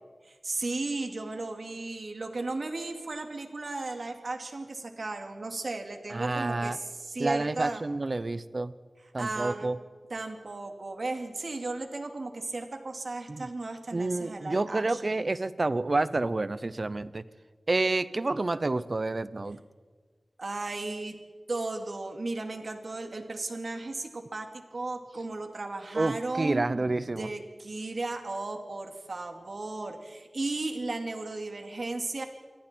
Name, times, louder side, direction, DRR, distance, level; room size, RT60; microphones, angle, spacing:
voice 1, 0.2-7.8 9.0-9.7 10.1-15.1 20.4-21.2 21.5-32.3, right 2 dB, 60° right, 5 dB, 2.5 m, -35 dB
voice 2, 6.1-6.8 7.2-8.7 9.1-9.8 13.3-13.5 13.9-17.2 17.7-19.6 25.9-27.3, right 2 dB, 45° right, 15 dB, 0.8 m, -29 dB
27.5 x 24.0 x 4.5 m, 1.5 s
wide cardioid pair, 90°, 0 cm